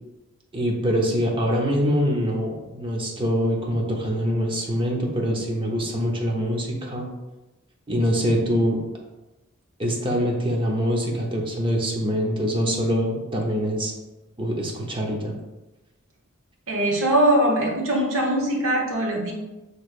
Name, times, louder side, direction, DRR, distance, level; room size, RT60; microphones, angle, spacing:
voice 1, 0.5-7.1 7.9-8.8 9.8-13.9 14.4-15.4, equal, 25° right, -1 dB, 0.8 m, -24 dB
voice 2, 16.7-19.3, right 1 dB, 70° right, -1 dB, 1.1 m, -21 dB
6.3 x 3.3 x 2.4 m, 1.1 s
head